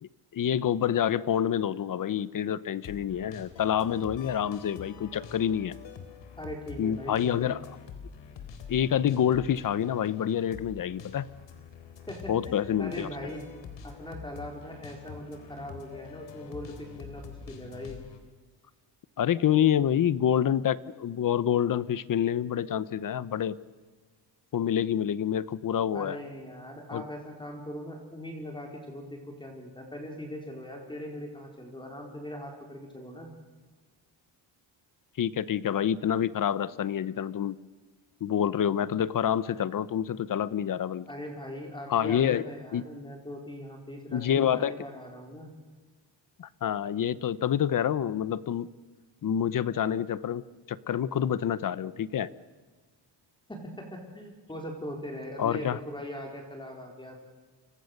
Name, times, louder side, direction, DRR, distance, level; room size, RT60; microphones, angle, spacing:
voice 1, 0.0-5.8 6.8-7.6 8.7-11.3 12.3-13.1 19.2-23.6 24.5-26.2 26.9-27.0 35.2-37.6 38.2-41.0 41.9-42.4 42.7-42.8 44.1-44.7 46.4-48.7 49.2-50.4 50.7-52.3 55.4-55.8, left 9 dB, 50° left, 18 dB, 0.9 m, -27 dB
sound 1, 2.8-18.2, left 7 dB, 75° left, 3.9 m, -46 dB
voice 2, 6.4-7.6 12.1-13.4 13.8-18.0 25.9-33.3 41.1-45.5 53.5-57.3, equal, 10° left, 2 dB, 4.3 m, -40 dB
30.0 x 25.5 x 6.7 m, 1.3 s
cardioid pair, 140°, 44 cm